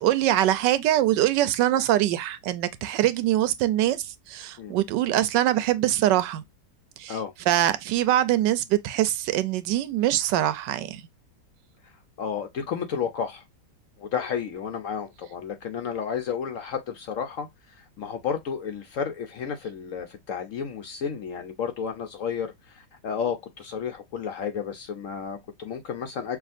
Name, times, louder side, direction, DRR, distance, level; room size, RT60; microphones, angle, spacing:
voice 1, 0.0-6.4 7.0-7.2 7.5-11.0, right 13 dB, 85° right, 1.3 m, -23 dB
voice 2, 12.2-13.4 14.0-26.4, left 7 dB, 65° left, 0.8 m, -32 dB
5.8 x 2.5 x 2.5 m
omnidirectional pair, 1.9 m